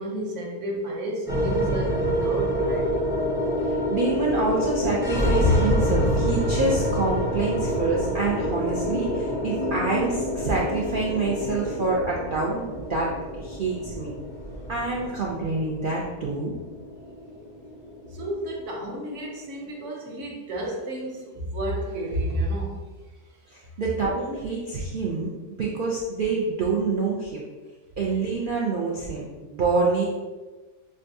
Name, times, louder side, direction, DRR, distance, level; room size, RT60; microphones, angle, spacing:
voice 1, 0.0-3.1 18.1-22.8, right 1 dB, 60° right, -2 dB, 1.1 m, -31 dB
sound 1, 1.3-19.7, equal, 5° right, 0.4 m, -27 dB
voice 2, 3.9-13.2 13.4-14.1 14.7-16.5 23.8-27.4 28.0-30.1, right 3 dB, 75° right, -4 dB, 0.4 m, -26 dB
6.3 x 2.3 x 2.6 m, 1.3 s
omnidirectional pair, 1.5 m